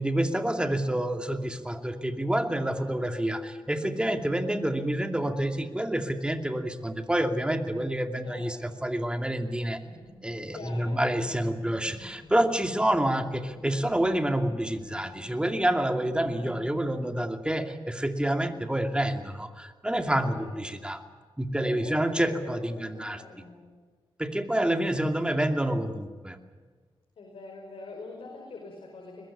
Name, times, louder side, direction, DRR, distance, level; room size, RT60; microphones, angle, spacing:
voice 1, 0.0-9.8 10.2-21.0 21.4-23.2 24.2-26.4, right 1 dB, 10° right, 6 dB, 2.5 m, -28 dB
voice 2, 2.5-3.0 8.2-8.8 10.5-11.2 16.2-16.7 19.9-20.9 21.5-23.8 24.4-25.1 27.2-29.3, left 3 dB, 85° left, 0 dB, 5.4 m, -45 dB
sound 1, 9.8-16.7, left 1 dB, 55° left, 5.4 m, -51 dB
22.0 x 20.5 x 8.7 m, 1.5 s
cardioid pair, 75°, 9 cm